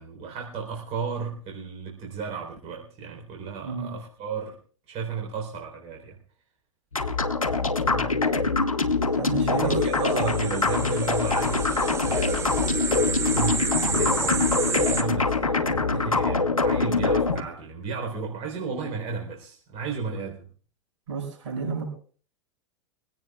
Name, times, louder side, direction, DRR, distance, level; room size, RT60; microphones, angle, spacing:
voice 1, 0.0-4.6 4.9-6.2 9.5-20.5, right 5 dB, 35° right, 1 dB, 4.0 m, -34 dB
voice 2, 3.6-3.9 7.5-8.2 9.1-9.7 21.1-21.9, right 5 dB, 65° right, 3 dB, 6.1 m, -32 dB
sound 1, 6.9-17.4, left 3 dB, 85° left, 1.2 m, -24 dB
sound 2, 9.7-15.0, right 5 dB, 15° right, 1.4 m, -31 dB
24.0 x 17.0 x 2.4 m, 0.43 s
figure-of-eight pair, 90°, 17 cm